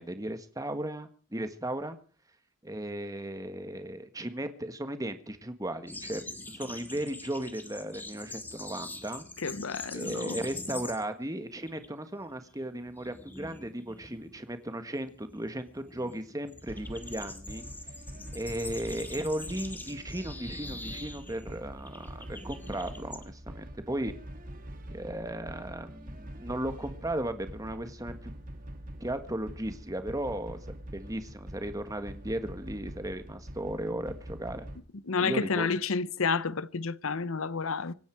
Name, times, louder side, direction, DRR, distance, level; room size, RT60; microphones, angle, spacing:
voice 1, 0.0-2.0 2.6-9.2 9.9-17.6 18.3-24.1 24.9-28.3 29.0-30.6 30.9-34.7 35.2-35.7, right 1 dB, 15° right, 1.6 m, -36 dB
sound 1, 5.9-11.3 11.5-11.9 12.2-23.2, left 2 dB, 10° left, 2.0 m, -44 dB
voice 2, 9.4-10.4 35.1-37.9, left 4 dB, 85° left, 0.8 m, -30 dB
sound 2, 16.7-34.8, right 1 dB, 40° right, 2.2 m, -44 dB
25.5 x 10.0 x 4.7 m
head